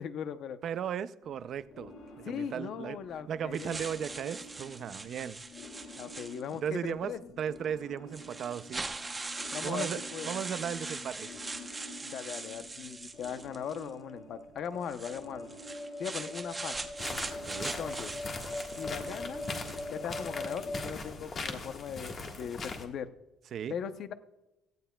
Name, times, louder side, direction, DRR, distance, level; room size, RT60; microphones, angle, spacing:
voice 1, 0.0-0.6 2.2-3.8 6.0-7.2 9.5-10.3 12.0-15.6 16.0-16.9 17.6-18.1 18.7-19.4 19.9-23.1 23.7-24.1, left 8 dB, 50° left, 11 dB, 0.7 m, -39 dB
voice 2, 0.6-1.9 2.4-3.0 3.3-5.4 6.6-8.9 9.6-11.3 17.5-17.7 23.5-23.7, right 8 dB, 45° right, 15 dB, 0.4 m, -36 dB
sound 1, 1.2-20.9, left 2 dB, 65° left, 3.5 m, -45 dB
sound 2, 3.5-6.7 7.6-7.7 8.1-13.9 14.8-20.0, right 3 dB, 15° right, 0.8 m, -41 dB
sound 3, 17.0-22.8, left 3 dB, 30° left, 1.5 m, -40 dB
17.0 x 14.5 x 2.3 m, 0.98 s
cardioid pair, 170°, 0 cm